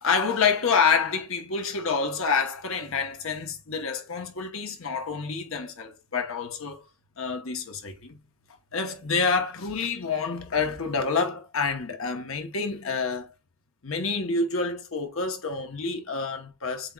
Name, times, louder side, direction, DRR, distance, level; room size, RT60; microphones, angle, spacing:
voice 1, 0.0-6.8 7.2-8.1 8.7-13.3 13.8-16.9, left 5 dB, 65° left, 1.0 m, -28 dB
7.7 x 3.0 x 2.3 m
head